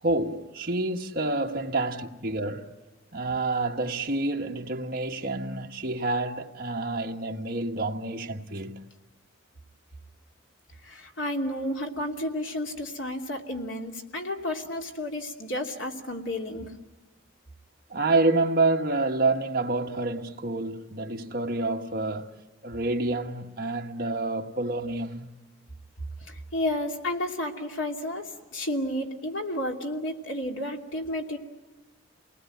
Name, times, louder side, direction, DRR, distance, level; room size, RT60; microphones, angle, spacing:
voice 1, 0.0-2.7 3.1-8.8 17.9-22.3 22.6-25.3, right 2 dB, 45° right, 1.5 m, -28 dB
voice 2, 10.8-16.7 26.3-31.4, left 1 dB, 75° left, 2.8 m, -32 dB
29.0 x 19.5 x 9.1 m
head